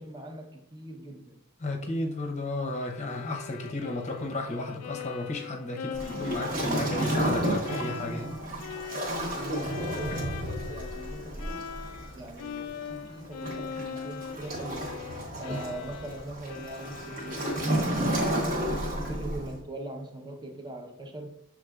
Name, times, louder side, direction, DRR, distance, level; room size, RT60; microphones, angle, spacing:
voice 1, 0.0-1.4 5.9-6.9 8.9-11.9 12.1-15.0 15.4-18.7 19.1-21.4, right 1 dB, 20° right, 2 dB, 0.7 m, -41 dB
voice 2, 1.6-8.3 10.1-10.2, left 2 dB, 30° left, 2 dB, 0.7 m, -33 dB
Bowed string instrument, 2.8-12.1 12.4-18.2, left 7 dB, 70° left, 0.3 m, -41 dB
Waves surf, 5.9-19.6, right 1 dB, 40° right, 1.1 m, -32 dB
6.3 x 3.6 x 2.3 m, 0.69 s
head